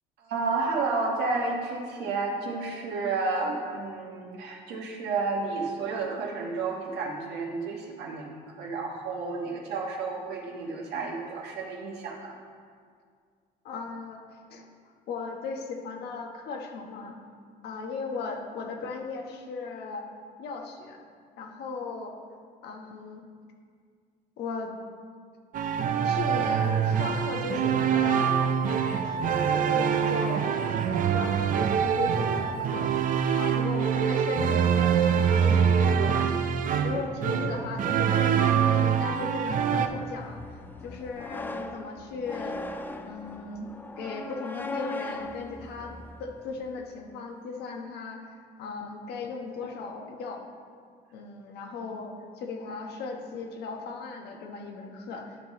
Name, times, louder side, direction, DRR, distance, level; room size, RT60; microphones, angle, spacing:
voice 1, 0.2-12.4 36.7-37.1, right 3 dB, 80° right, 0 dB, 1.4 m, -31 dB
voice 2, 13.6-14.2 14.5-14.7 15.1-17.2 17.6-20.1 20.4-21.0 21.4-22.1 22.6-23.2 24.4-24.7 26.0-28.4 28.7-30.5 31.1-32.9 33.3-36.3 36.8-42.6 43.0-43.7 44.0-45.9 46.2-48.3 48.6-50.4 51.1-55.4, left 4 dB, 75° left, 2 dB, 1.2 m, -37 dB
sound 1, 25.5-39.9, right 7 dB, 55° right, 0.5 m, -25 dB
sound 2, 36.8-46.7, left 2 dB, 10° left, 0.5 m, -40 dB
12.0 x 5.7 x 3.1 m, 2.1 s
cardioid pair, 110°, 17 cm